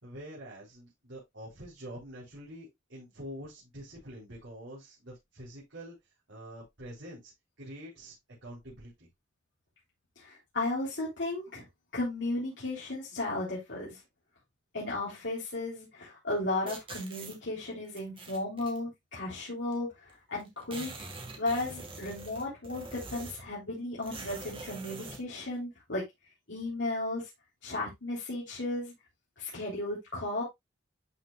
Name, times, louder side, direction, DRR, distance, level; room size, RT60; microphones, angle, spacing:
voice 1, 0.0-5.9 6.3-7.3 7.6-8.1 8.4-9.1, equal, 85° right, 4.3 m, -46 dB
voice 2, 10.2-11.6 11.9-14.0 14.7-20.9 21.4-26.0 26.5-27.3 27.6-28.9 29.4-30.4, left 2 dB, 80° left, 3.6 m, -35 dB
sound 1, 16.7-17.4 18.0-18.8 19.7-19.8 20.1-20.2 20.4-23.5 24.0-25.2, right 3 dB, 30° right, 1.9 m, -44 dB
11.5 x 5.5 x 2.4 m
head